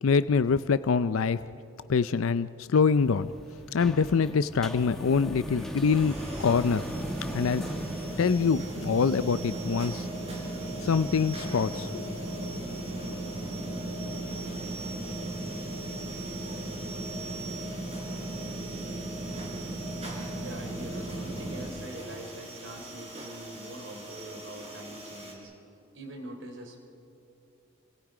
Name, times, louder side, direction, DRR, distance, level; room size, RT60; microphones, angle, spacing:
voice 1, 0.0-1.4 1.9-3.3 3.7-6.8 7.3-7.6 8.2-10.1 10.8-12.0, left 5 dB, 85° left, 13 dB, 0.5 m, -25 dB
sound 1, 2.9-8.3, equal, ahead, 1.6 m, -39 dB
sound 2, 5.7-25.3, right 2 dB, 30° right, 4.2 m, -43 dB
sound 3, 6.9-21.7, right 1 dB, 45° right, 6.5 m, -37 dB
voice 2, 20.4-25.5 25.9-26.8, right 1 dB, 65° right, 3 dB, 3.4 m, -43 dB
29.0 x 25.5 x 5.0 m, 2.8 s
head